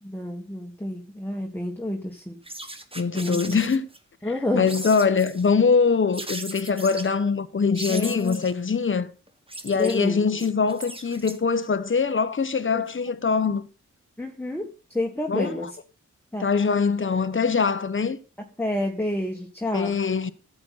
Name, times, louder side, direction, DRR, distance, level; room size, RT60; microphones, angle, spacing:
voice 1, 0.0-2.4 3.1-3.6 4.2-4.7 7.9-8.4 9.8-10.4 12.7-12.8 14.2-15.8 16.3-16.5 18.6-20.0, left 1 dB, 5° left, 1.7 m, -29 dB
sound 1, 2.4-4.0 4.7-5.5 6.1-7.1 7.7-8.6 9.3-11.7, right 1 dB, 20° right, 1.6 m, -38 dB
voice 2, 2.9-3.9 4.5-9.1 9.6-13.7 15.3-15.5 16.4-18.2 19.7-20.3, left 5 dB, 40° left, 1.1 m, -23 dB
12.0 x 8.1 x 4.2 m
cardioid pair, 45°, 30 cm